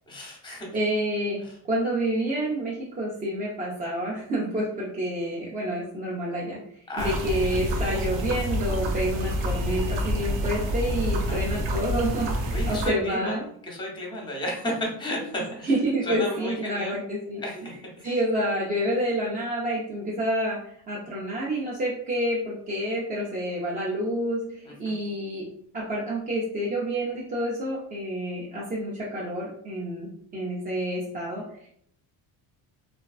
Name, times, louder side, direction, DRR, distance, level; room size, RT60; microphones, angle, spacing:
voice 1, 0.0-0.7 6.9-7.3 7.8-8.2 11.3-11.4 12.5-15.7 16.1-17.0 17.4-18.2 24.6-25.0, equal, 10° left, 0 dB, 0.7 m, -33 dB
voice 2, 0.7-6.6 7.0-13.4 15.6-17.7 18.0-25.5 25.7-31.7, right 1 dB, 20° right, -5 dB, 0.4 m, -28 dB
sound 1, 7.0-12.9, equal, 85° right, 0.6 m, -28 dB
2.4 x 2.2 x 2.3 m, 0.67 s
cardioid pair, 115°, 44 cm